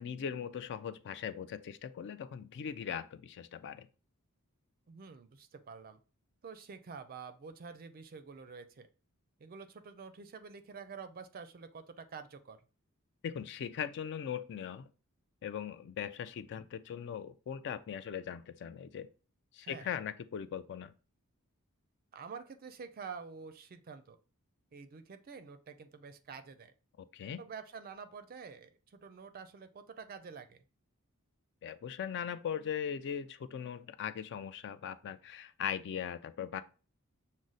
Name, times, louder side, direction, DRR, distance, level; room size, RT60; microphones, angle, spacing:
voice 1, 0.0-3.9 13.2-14.9 15.4-19.1 19.5-20.9 27.1-27.4 31.6-36.6, left 8 dB, 55° left, 0.3 m, -39 dB
voice 2, 4.9-6.0 6.4-8.9 9.4-12.6 19.6-19.9 22.1-24.2 24.7-26.7 27.4-30.6, right 5 dB, 40° right, 0.4 m, -48 dB
6.2 x 2.1 x 3.9 m
head